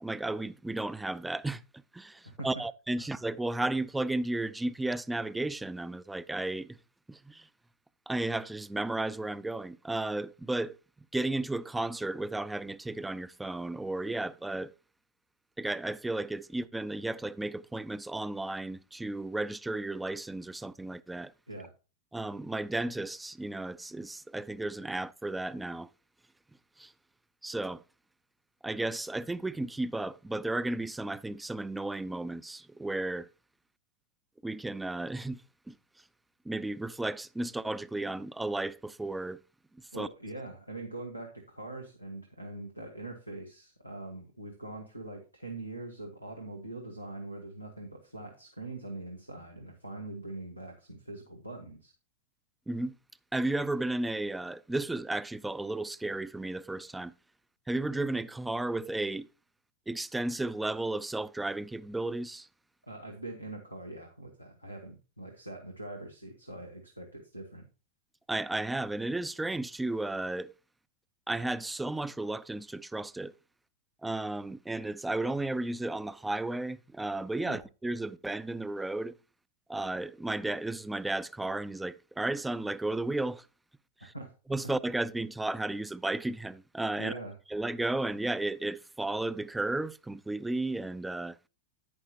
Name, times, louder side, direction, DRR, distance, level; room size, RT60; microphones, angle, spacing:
voice 1, 0.0-1.6 1.9-6.8 7.1-7.5 8.1-10.8 11.1-14.7 15.6-21.3 22.1-25.9 26.8-26.9 27.4-27.8 28.6-33.3 34.4-35.4 35.7-35.8 36.5-39.4 40.0-40.1 52.7-53.0 53.3-57.1 57.7-59.3 59.9-62.5 68.3-70.5 71.3-73.3 74.0-79.1 79.7-83.5 84.0-84.1 84.5-87.1 87.5-91.4, right 2 dB, 5° right, 0.5 m, -33 dB
voice 2, 39.9-51.9 62.8-67.7 77.4-77.6 84.0-84.3 87.0-87.3, right 2 dB, 90° right, 1.4 m, -43 dB
10.5 x 9.5 x 2.8 m
figure-of-eight pair, 90°, 0 cm